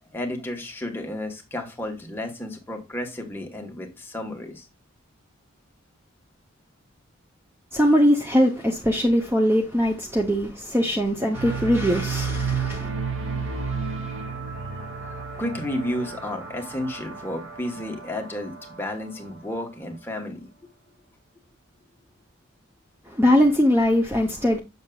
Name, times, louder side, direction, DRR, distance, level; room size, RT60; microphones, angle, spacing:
voice 1, 0.1-4.7 14.9-20.5, left 1 dB, 10° left, 1.1 m, -32 dB
voice 2, 7.7-12.9 23.1-24.6, equal, 10° right, 0.6 m, -21 dB
sound 1, 11.3-19.6, right 5 dB, 65° right, 2.1 m, -32 dB
6.7 x 6.4 x 2.3 m
head